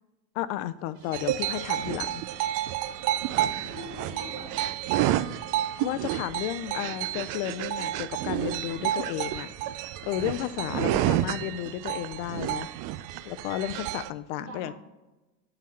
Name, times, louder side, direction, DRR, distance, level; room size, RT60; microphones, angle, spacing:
voice 1, 0.3-2.2 5.3-5.4 5.8-9.5 9.8-12.7 13.2-14.7, left 13 dB, 65° left, 14 dB, 0.5 m, -33 dB
sound 1, 0.9-11.5, right 3 dB, 80° right, 2.0 m, -52 dB
sound 2, 1.1-14.1, right 13 dB, 50° right, 0.4 m, -30 dB
voice 2, 3.7-4.7 10.7-11.0 14.4-14.7, right 1 dB, 30° right, 0 dB, 2.6 m, -43 dB
9.1 x 3.9 x 4.2 m, 1.1 s
supercardioid pair, 115°, 42 cm